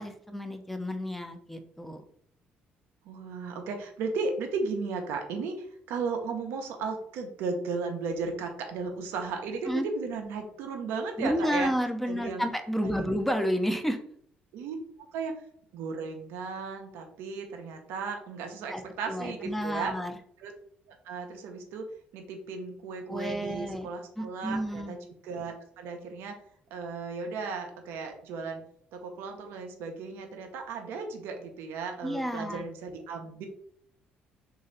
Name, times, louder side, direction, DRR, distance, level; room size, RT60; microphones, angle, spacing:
voice 1, 0.0-2.0 9.7-9.8 11.2-14.0 18.7-18.8 19.1-20.1 23.1-23.9 24.2-24.9 32.0-32.7, equal, 5° left, 6 dB, 0.6 m, -31 dB
voice 2, 3.0-11.7 12.1-12.5 12.8-13.1 14.5-14.8 15.1-15.3 15.7-19.9 20.4-20.5 20.9-21.9 22.1-26.4 26.7-28.6 28.9-33.5, right 4 dB, 80° right, 4 dB, 0.8 m, -35 dB
3.1 x 2.7 x 3.9 m, 0.65 s
supercardioid pair, 75°, 4 cm